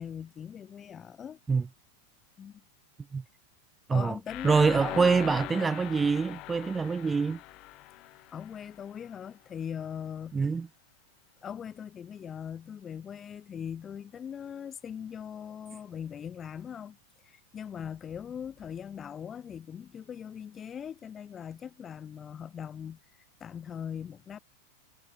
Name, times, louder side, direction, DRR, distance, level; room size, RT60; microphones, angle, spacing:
voice 1, 0.0-1.4 2.4-2.6 3.9-5.1 5.5-5.7 8.3-10.3 11.4-17.0 17.3-23.0 23.4-24.4, left 8 dB, 25° left, 1.0 m, -40 dB
sound 1, 4.3-9.1, left 21 dB, 40° left, 0.6 m, -41 dB
voice 2, 4.4-7.4 10.3-10.7, right 5 dB, 15° right, 0.8 m, -25 dB
figure-of-eight pair, 90°, 0 cm